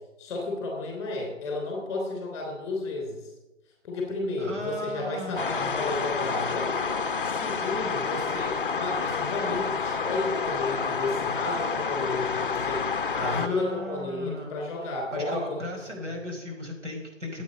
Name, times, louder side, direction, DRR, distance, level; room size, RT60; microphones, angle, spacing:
voice 1, 0.2-3.2 3.8-6.7 7.2-12.9 13.1-15.6 15.9-16.2, left 2 dB, 10° left, 1 dB, 3.0 m, -32 dB
voice 2, 4.4-5.7 13.2-14.6 15.1-17.4, left 1 dB, 65° right, 1 dB, 5.0 m, -36 dB
sound 1, 5.4-13.5, left 5 dB, 45° left, 0.6 m, -29 dB
9.8 x 8.4 x 9.5 m, 1.0 s
hypercardioid pair, 165°, 39 cm